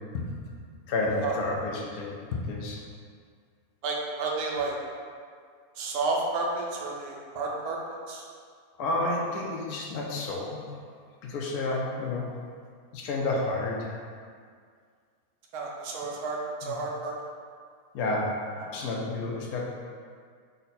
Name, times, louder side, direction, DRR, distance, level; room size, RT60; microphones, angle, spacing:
voice 1, 0.1-0.5 0.9-2.8 8.8-10.6 11.2-12.3 12.9-13.9 16.6-16.7 17.9-18.4 18.7-19.7, left 2 dB, 80° left, -2 dB, 1.1 m, -30 dB
voice 2, 3.8-4.8 5.8-7.8 8.1-8.2 15.5-17.1 18.6-18.7, right 3 dB, 80° right, -2 dB, 1.1 m, -31 dB
3.9 x 2.1 x 4.0 m, 2.1 s
omnidirectional pair, 1.6 m